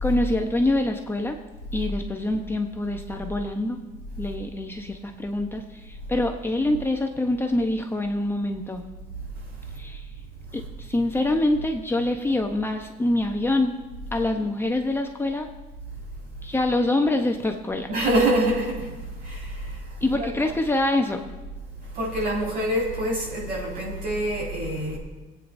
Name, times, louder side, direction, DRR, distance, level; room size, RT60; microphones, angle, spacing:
voice 1, 0.0-1.4 1.7-3.8 4.2-8.8 9.8-10.1 10.5-13.7 14.1-15.5 16.4-17.9 20.0-21.2, left 2 dB, 15° left, 3 dB, 0.8 m, -25 dB
voice 2, 17.9-18.9 19.2-19.8 20.2-20.3 21.9-25.0, right 1 dB, 60° right, -4 dB, 5.0 m, -25 dB
26.0 x 8.9 x 2.6 m, 1.2 s
cardioid pair, 110°, 17 cm